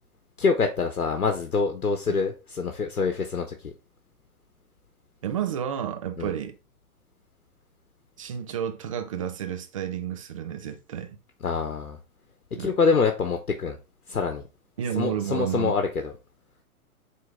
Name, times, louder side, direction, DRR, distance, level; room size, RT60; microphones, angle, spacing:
voice 1, 0.4-3.7 6.2-6.3 11.4-12.0 12.6-13.8 14.1-14.4 15.0-16.1, left 5 dB, 90° left, 1.0 m, -25 dB
voice 2, 5.2-6.6 8.2-11.2 12.5-12.7 14.8-15.8, right 9 dB, 25° right, 0.4 m, -31 dB
7.6 x 3.4 x 3.6 m
figure-of-eight pair, 125°, 44 cm